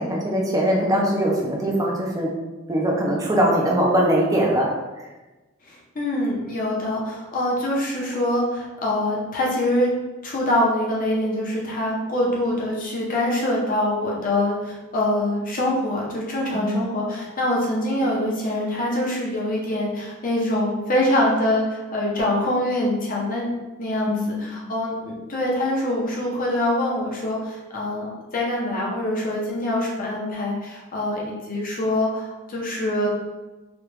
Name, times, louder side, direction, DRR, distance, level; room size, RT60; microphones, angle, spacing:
voice 1, 0.0-2.3 2.7-4.7 16.5-16.8 24.1-24.6, equal, 15° right, -2 dB, 0.6 m, -22 dB
voice 2, 5.7-9.9 10.2-23.5 23.8-33.1, left 1 dB, 40° left, -3 dB, 0.8 m, -24 dB
3.1 x 2.4 x 3.3 m, 1.1 s
head